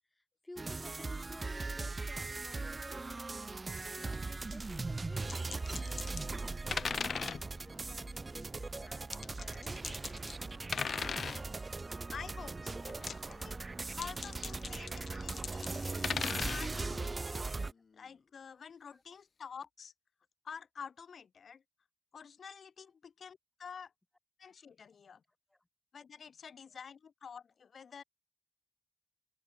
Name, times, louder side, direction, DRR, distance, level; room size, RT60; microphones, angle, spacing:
voice 1, 0.1-3.5 4.0-10.5 18.9-19.0 25.5-25.6, left 1 dB, 15° left, 3.0 m, -55 dB
sound 1, 0.6-17.7, right 3 dB, 30° right, 0.3 m, -39 dB
sound 2, 5.3-6.3 6.7-7.5 9.1-10.4 10.7-11.4 12.9-13.3 13.9-16.7, left 6 dB, 70° left, 0.4 m, -38 dB
voice 2, 12.1-13.6 13.9-17.4 17.9-19.9 20.4-21.6 22.1-23.9 24.4-25.2 25.9-28.0, left 6 dB, 90° left, 1.0 m, -49 dB
Human voice, 13.9-14.8 16.0-18.7, left 5 dB, 50° left, 3.1 m, -58 dB
wide cardioid pair, 175°, 0 cm